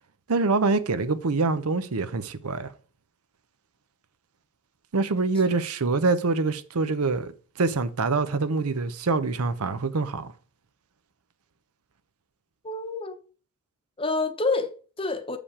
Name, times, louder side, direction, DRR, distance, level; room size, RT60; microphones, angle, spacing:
voice 1, 0.3-2.7 4.9-7.3 7.6-10.3, right 3 dB, 85° right, 0.7 m, -25 dB
voice 2, 12.6-13.2 14.0-15.4, left 3 dB, 25° left, 0.9 m, -28 dB
7.3 x 5.1 x 4.8 m
head